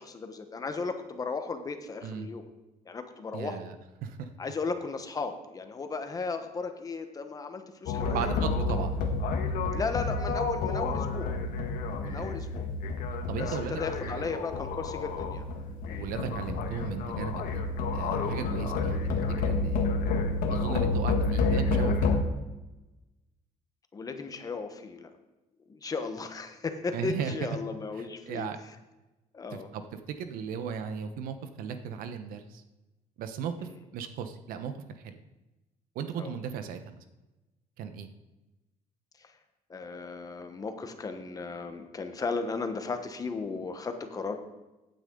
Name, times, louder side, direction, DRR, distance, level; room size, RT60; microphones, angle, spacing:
voice 1, 0.0-2.4 2.8-3.6 4.4-8.3 9.7-11.3 12.0-12.6 13.4-15.5 15.9-16.0 23.9-25.1 25.7-28.5 29.3-29.7 33.6-33.8 36.2-36.4 39.2-39.3 39.7-44.4, left 4 dB, 25° left, 7 dB, 1.1 m, -35 dB
voice 2, 3.3-3.7 4.0-4.3 8.1-9.0 12.0-12.6 13.3-14.4 16.0-17.6 17.9-19.1 19.4-19.8 20.5-22.1 26.9-27.3 28.0-28.6 29.5-29.8 30.1-32.6 33.2-35.2 35.9-37.0 37.8-38.1, right 7 dB, 85° right, 9 dB, 1.0 m, -36 dB
sound 1, 7.9-22.2, left 3 dB, 80° left, 1.4 m, -29 dB
16.0 x 9.0 x 3.9 m, 1.1 s
cardioid pair, 145°, 14 cm